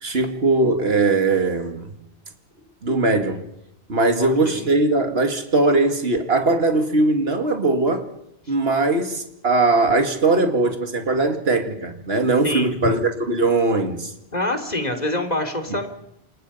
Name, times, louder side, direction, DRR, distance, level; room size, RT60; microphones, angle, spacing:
voice 1, 0.0-1.9 2.8-3.4 3.9-8.1 8.5-14.1, right 2 dB, 75° right, 2.6 m, -20 dB
voice 2, 4.2-4.7 8.5-8.6 12.4-13.0 14.3-15.9, left 1 dB, 40° left, 3.3 m, -26 dB
29.0 x 27.5 x 5.7 m
omnidirectional pair, 1.1 m